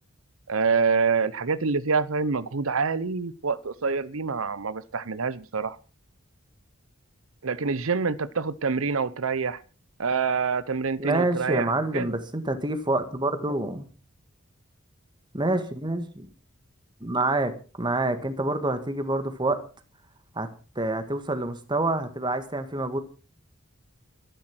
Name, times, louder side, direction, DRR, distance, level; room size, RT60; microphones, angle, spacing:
voice 1, 0.5-5.8 7.4-9.6 10.0-12.1, right 5 dB, 90° right, 0.8 m, -26 dB
voice 2, 11.0-13.9 15.3-16.3 17.0-17.5 17.8-19.6 20.4-20.5 20.8-23.0, right 2 dB, 20° right, 1.9 m, -27 dB
13.0 x 12.0 x 6.1 m
head